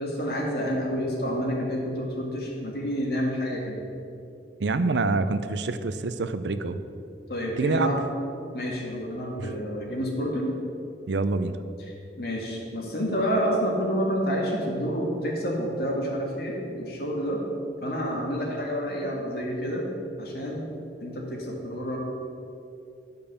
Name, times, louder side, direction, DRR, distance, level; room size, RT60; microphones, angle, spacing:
voice 1, 0.0-3.8 7.3-8.0 8.5-10.5 12.2-17.4 17.8-19.9 20.2-20.7 21.0-22.0, equal, 60° left, -2 dB, 2.0 m, -29 dB
voice 2, 4.6-6.8 7.6-7.9 9.4-9.5 11.1-11.6, right 3 dB, 80° right, 11 dB, 0.5 m, -26 dB
10.0 x 5.3 x 6.9 m, 2.7 s
head